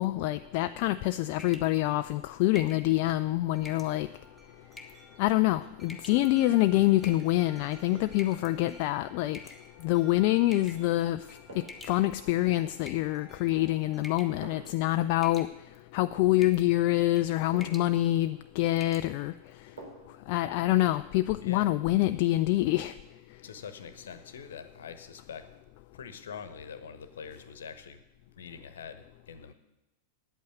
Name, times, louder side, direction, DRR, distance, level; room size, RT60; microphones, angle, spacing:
voice 1, 0.0-4.1 5.2-9.4 9.8-11.2 11.5-15.5 15.9-19.3 20.3-22.9, left 16 dB, 45° left, 10 dB, 0.3 m, -26 dB
sound 1, 1.4-1.8 2.5-2.9 3.6-3.9 4.7-5.1 5.8-6.3 7.0-7.5 8.2-8.5 9.3-9.9 10.5-10.9 11.7-12.3 12.8-13.5 14.0-14.4 14.7-14.9 15.2-15.8 16.4-16.7 17.0-17.3 17.6-17.9 18.3-18.4 18.8-19.1, left 2 dB, 10° left, 1.3 m, -46 dB
Wind chime, 3.5-14.3, right 1 dB, 15° right, 5.4 m, -56 dB
sound 2, 6.4-6.7 7.9-8.3 10.4-10.6 11.5-11.9 13.3-13.7 14.4-14.9 16.5-16.6 17.5-18.0 19.8-20.2 20.6-20.7, right 3 dB, 65° right, 3.5 m, -49 dB
voice 2, 21.4-21.7 23.4-25.5 25.9-28.0 28.4-29.5, left 6 dB, 65° left, 11 dB, 1.1 m, -44 dB
9.2 x 8.4 x 9.1 m, 0.97 s
figure-of-eight pair, 90°, 0 cm